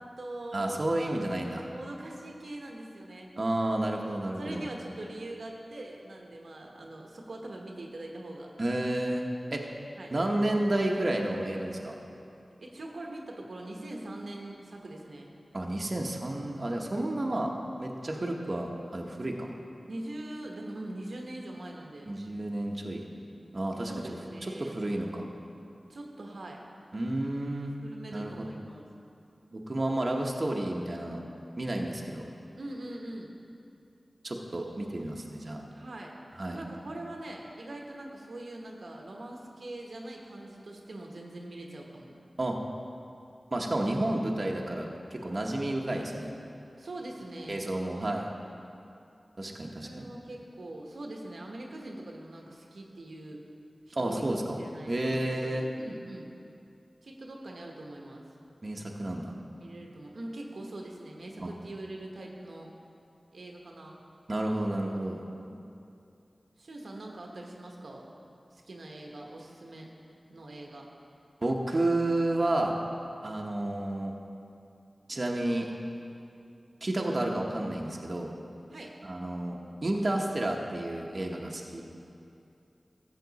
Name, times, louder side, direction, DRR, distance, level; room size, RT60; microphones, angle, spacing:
voice 1, 0.0-3.3 4.4-8.5 10.0-10.1 12.6-15.3 19.9-22.1 23.8-24.8 25.9-26.6 27.8-28.9 32.6-33.3 35.7-36.1 36.5-42.1 46.8-47.6 49.8-53.4 53.9-54.2 54.6-56.3 57.0-58.2 59.6-62.7 63.3-64.0 66.6-68.1 68.5-69.9 70.3-70.9 78.7-78.9, right 1 dB, 85° right, 0 dB, 1.0 m, -42 dB
voice 2, 0.5-1.7 3.4-4.7 8.6-9.2 9.5-9.6 10.1-12.0 15.5-17.5 17.8-19.5 22.1-23.0 23.5-24.0 24.6-25.2 26.9-27.7 28.1-28.3 29.5-31.2 31.6-32.2 34.2-35.6 36.4-36.6 42.4-42.6 43.5-46.3 47.5-48.3 49.4-50.1 53.9-54.6 54.9-55.7 58.6-59.3 61.4-61.5 64.3-65.2 71.4-72.8 73.2-74.1 75.1-75.7 76.8-78.3 79.0-81.8, right 1 dB, 50° right, 0 dB, 1.0 m, -31 dB
13.5 x 7.7 x 4.1 m, 2.6 s
cardioid pair, 45°, 0 cm